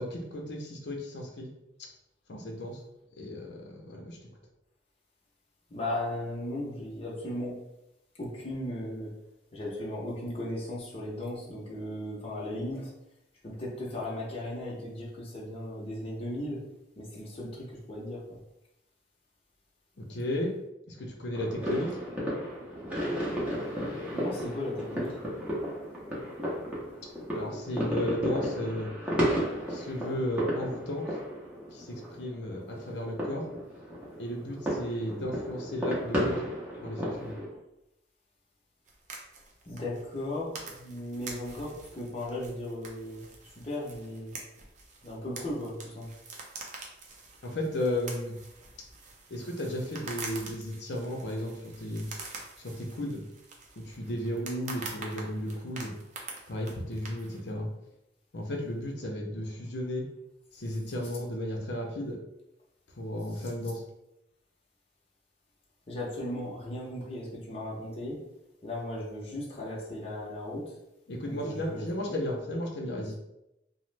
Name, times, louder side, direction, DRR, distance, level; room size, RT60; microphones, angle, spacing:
voice 1, 0.0-1.5 2.3-2.8 3.2-4.2 20.0-20.5 20.9-22.0 27.3-28.9 29.7-31.0 31.7-33.4 34.2-36.4 36.8-37.3 47.4-48.3 49.3-52.1 52.6-53.2 53.8-55.9 56.5-57.7 58.3-60.0 60.5-62.2 63.0-63.8 71.1-73.1, left 1 dB, 75° left, 1 dB, 0.6 m, -34 dB
voice 2, 5.7-7.6 8.2-9.1 9.5-12.9 13.4-16.6 17.0-18.4 24.1-25.2 39.7-43.2 43.6-44.3 45.0-46.1 63.3-63.5 65.9-68.2 68.6-70.6 71.2-72.1, left 1 dB, 35° left, -5 dB, 0.7 m, -36 dB
sound 1, 21.3-37.5, equal, 10° right, 0.7 m, -33 dB
sound 2, 38.9-57.5, right 3 dB, 45° right, 0.5 m, -46 dB
3.0 x 2.1 x 3.2 m, 0.86 s
head